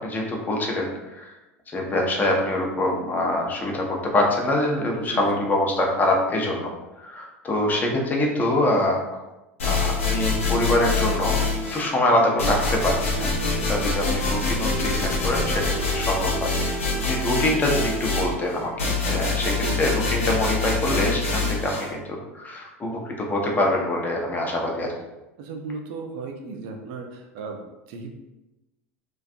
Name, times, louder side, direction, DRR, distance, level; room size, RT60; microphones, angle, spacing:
voice 1, 0.0-1.4 1.7-6.7 7.0-9.0 9.6-11.4 11.7-24.9, left 1 dB, 25° left, 0 dB, 0.6 m, -25 dB
voice 2, 4.9-5.5 19.2-20.0 25.4-28.1, right 4 dB, 55° right, 3 dB, 0.4 m, -36 dB
sound 1, 9.6-11.9 12.4-21.9, left 3 dB, 80° left, 0.6 m, -25 dB
2.5 x 2.2 x 2.5 m, 1.0 s
figure-of-eight pair, 75°, 7 cm